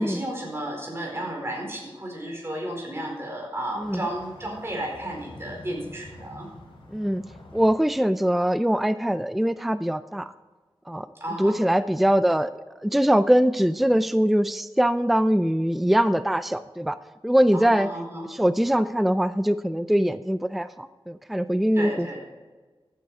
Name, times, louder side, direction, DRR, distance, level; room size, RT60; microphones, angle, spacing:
voice 1, 0.0-6.5 11.2-11.6 17.5-18.3 21.8-22.2, right 1 dB, 30° right, 0 dB, 4.5 m, -33 dB
sound 1, 3.8-7.6, left 1 dB, 80° left, 3.2 m, -46 dB
voice 2, 6.9-7.2 7.5-10.3 10.9-11.1 11.4-12.5 12.8-17.0 17.2-17.9 18.3-22.1, equal, ahead, 12 dB, 0.4 m, -22 dB
15.0 x 9.2 x 4.8 m, 1.3 s
wide cardioid pair, 90°, 9 cm